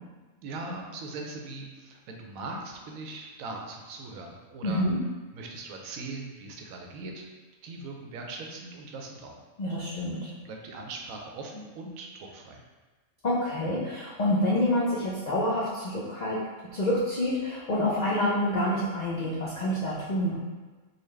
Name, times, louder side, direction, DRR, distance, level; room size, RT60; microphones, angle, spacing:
voice 1, 0.4-4.9 5.3-7.3 7.6-9.4 10.4-12.6, right 3 dB, 80° right, 1 dB, 1.0 m, -40 dB
voice 2, 4.6-5.0 9.6-10.3 13.2-16.4 16.7-20.4, left 1 dB, 90° left, -6 dB, 0.3 m, -27 dB
3.9 x 2.3 x 3.1 m, 1.3 s
omnidirectional pair, 1.4 m